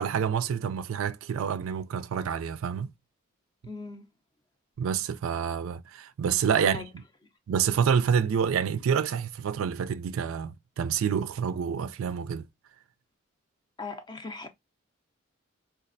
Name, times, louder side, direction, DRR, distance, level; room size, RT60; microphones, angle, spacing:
voice 1, 0.0-2.9 4.8-6.8 7.5-12.5, right 7 dB, 75° right, 0.3 m, -28 dB
voice 2, 3.6-4.1 6.6-6.9 13.8-14.5, left 4 dB, 20° left, 0.5 m, -39 dB
4.0 x 2.4 x 2.5 m
head